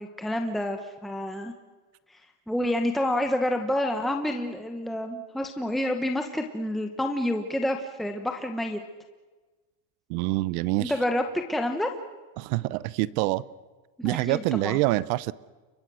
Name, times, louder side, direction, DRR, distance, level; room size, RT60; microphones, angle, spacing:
voice 1, 0.0-1.5 2.5-8.8 10.8-11.9 14.0-14.8, left 1 dB, ahead, 4 dB, 1.2 m, -28 dB
voice 2, 10.1-10.9 12.4-13.4 14.0-15.3, right 19 dB, 65° right, 19 dB, 0.9 m, -26 dB
29.5 x 24.0 x 6.3 m, 1.3 s
cardioid pair, 155°, 46 cm